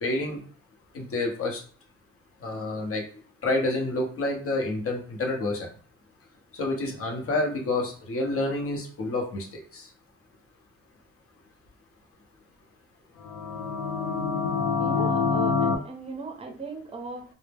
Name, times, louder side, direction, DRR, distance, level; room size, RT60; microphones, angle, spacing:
voice 1, 0.0-0.4 0.9-1.6 2.4-3.0 3.4-5.7 6.5-9.5 9.7-9.9, left 2 dB, 45° left, 1 dB, 0.8 m, -28 dB
sound 1, 13.2-15.8, left 5 dB, 75° left, 0.6 m, -26 dB
voice 2, 14.8-17.2, right 3 dB, 20° right, 3 dB, 0.6 m, -37 dB
2.0 x 2.0 x 3.3 m, 0.43 s
cardioid pair, 90°, 30 cm